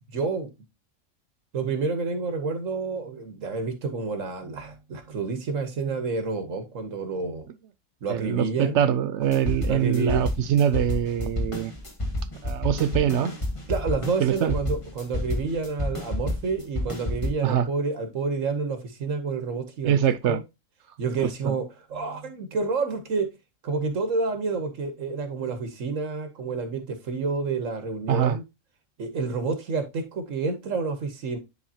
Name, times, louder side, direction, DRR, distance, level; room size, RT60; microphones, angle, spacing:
voice 1, 0.1-0.5 1.5-7.5 8.0-8.8 9.7-10.3 13.7-20.4 21.0-23.3 23.6-28.4 29.0-31.4, right 4 dB, 85° right, 1.5 m, -29 dB
voice 2, 8.1-11.7 12.4-13.3 14.2-14.5 17.4-17.7 19.8-20.4 21.2-21.5 28.1-28.4, right 9 dB, 70° right, 0.8 m, -23 dB
sound 1, 9.2-17.3, left 1 dB, 25° left, 1.6 m, -30 dB
10.0 x 4.0 x 2.8 m
omnidirectional pair, 1.3 m